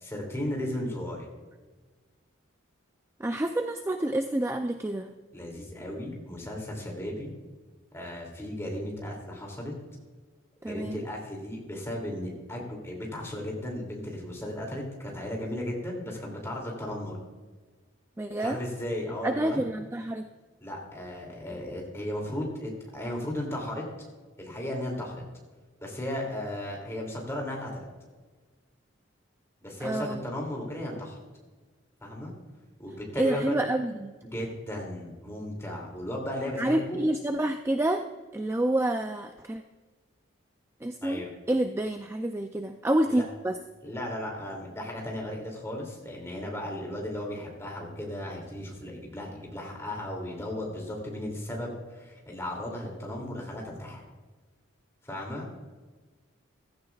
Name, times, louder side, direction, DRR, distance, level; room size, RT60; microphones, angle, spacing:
voice 1, 0.0-1.3 5.3-7.3 7.9-9.7 10.6-17.2 18.4-19.6 20.6-23.8 24.4-25.2 25.8-27.9 29.6-31.2 32.0-32.3 32.8-33.5 34.3-37.0 41.0-41.3 43.1-43.3 43.8-54.0 55.0-55.5, left 1 dB, 15° left, -1 dB, 2.7 m, -35 dB
voice 2, 3.2-5.1 10.6-11.0 18.2-18.6 19.2-20.3 29.8-30.2 33.2-34.2 36.6-38.1 38.3-39.6 40.8-43.6, right 1 dB, 10° right, 6 dB, 0.3 m, -28 dB
15.5 x 14.0 x 2.4 m, 1.3 s
head